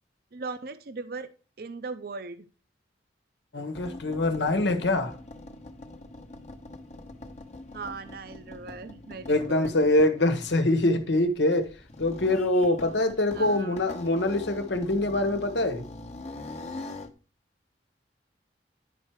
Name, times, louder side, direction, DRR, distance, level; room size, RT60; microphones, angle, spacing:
voice 1, 0.3-1.3 1.6-2.5 7.7-9.7 13.3-13.8, right 4 dB, 55° right, 0.6 m, -38 dB
voice 2, 3.5-5.1 9.3-11.7 12.0-15.9, left 2 dB, 80° left, 1.2 m, -24 dB
sound 1, 3.7-17.1, left 2 dB, 40° left, 1.0 m, -43 dB
11.0 x 4.5 x 4.7 m
head